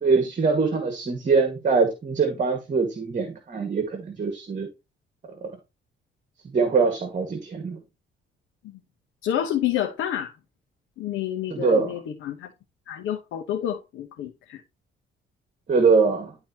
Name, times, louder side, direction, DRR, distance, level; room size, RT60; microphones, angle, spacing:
voice 1, 0.0-4.7 5.4-5.5 6.5-7.8 11.5-12.0 15.7-16.4, right 4 dB, 40° right, 1.9 m, -23 dB
voice 2, 9.2-10.3 11.0-12.5 12.9-14.6, left 11 dB, 85° left, 1.1 m, -29 dB
12.0 x 4.0 x 3.0 m
cardioid pair, 90°, 20 cm